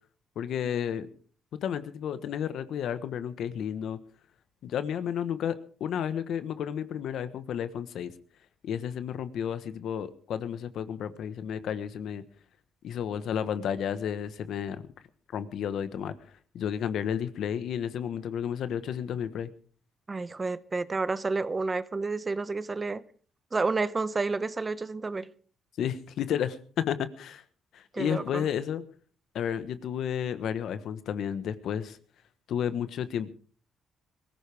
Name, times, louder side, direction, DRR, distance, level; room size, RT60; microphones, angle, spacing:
voice 1, 0.3-1.1 1.5-4.0 4.6-8.1 8.6-12.2 12.8-14.8 15.3-16.1 16.5-19.5 25.8-27.4 27.7-28.8 29.3-32.0 32.5-33.3, left 9 dB, 75° left, 1.3 m, -32 dB
voice 2, 20.1-23.0 23.5-25.3 27.9-28.5, right 3 dB, 25° right, 0.9 m, -30 dB
22.0 x 15.0 x 3.5 m
cardioid pair, 90°, 0 cm